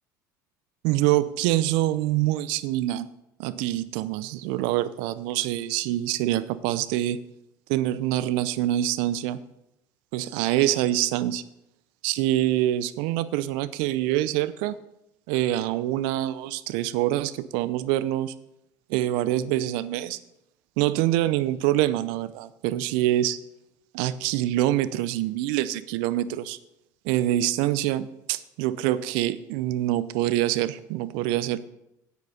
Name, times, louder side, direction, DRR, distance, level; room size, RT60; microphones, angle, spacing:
voice 1, 0.8-3.1 3.4-7.2 7.7-9.4 10.1-11.4 12.0-14.8 15.3-18.3 18.9-20.2 20.8-23.4 23.9-26.6 27.0-31.6, right 14 dB, 70° right, 16 dB, 0.6 m, -25 dB
9.2 x 8.2 x 5.6 m, 0.85 s
hypercardioid pair, 75°, 9 cm